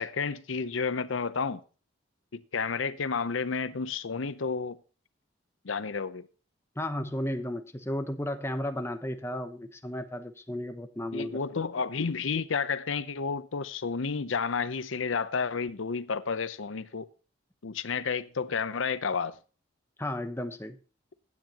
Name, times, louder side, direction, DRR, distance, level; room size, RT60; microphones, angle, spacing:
voice 1, 0.0-1.6 2.3-4.8 5.6-6.2 11.1-17.1 17.6-19.4, left 5 dB, 85° left, 0.7 m, -31 dB
voice 2, 6.8-11.4 20.0-20.8, left 1 dB, 15° left, 0.9 m, -34 dB
15.0 x 9.4 x 2.9 m
head